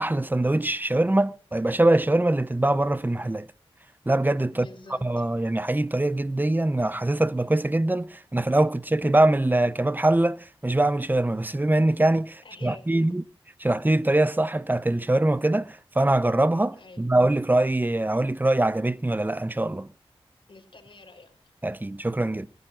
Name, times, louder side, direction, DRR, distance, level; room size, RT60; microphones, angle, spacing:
voice 1, 0.0-3.5 4.1-4.7 5.0-13.2 13.6-19.9 21.6-22.5, right 1 dB, 20° right, 0.8 m, -23 dB
voice 2, 4.5-5.3 12.4-13.2 16.7-17.1 20.5-21.5, left 3 dB, 55° left, 4.2 m, -49 dB
27.0 x 15.0 x 2.6 m
cardioid pair, 50°, 10 cm